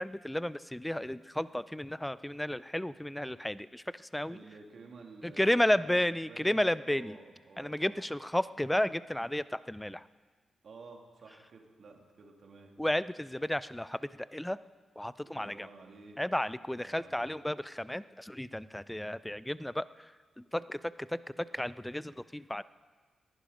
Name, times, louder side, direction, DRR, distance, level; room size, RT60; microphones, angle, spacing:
voice 1, 0.0-4.4 5.2-7.2 7.6-10.1 12.8-14.6 15.0-15.7 16.2-20.1 20.4-22.6, left 1 dB, 10° left, 17 dB, 0.5 m, -32 dB
voice 2, 4.3-8.1 10.6-12.7 15.2-16.2 16.6-17.2, right 4 dB, 65° right, 1 dB, 2.5 m, -53 dB
19.5 x 11.0 x 5.1 m, 1.5 s
supercardioid pair, 50°, 0 cm